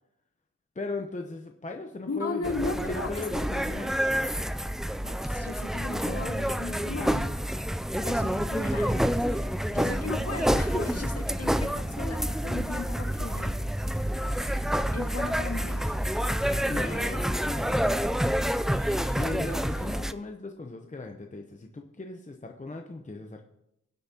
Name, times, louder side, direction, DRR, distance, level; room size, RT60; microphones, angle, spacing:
voice 1, 0.8-4.0 16.7-18.3 19.1-23.5, left 3 dB, 25° left, 4 dB, 0.8 m, -38 dB
voice 2, 2.1-3.1 4.1-4.2 5.0-7.3 8.0-13.6 14.9-15.8 16.7-17.2, left 3 dB, 50° left, 4 dB, 1.8 m, -36 dB
sound 1, 2.4-20.1, equal, ahead, 0.3 m, -28 dB
sound 2, 14.2-19.9, right 2 dB, 55° right, 4.1 m, -52 dB
23.0 x 8.0 x 2.9 m, 0.84 s
cardioid pair, 65°, 32 cm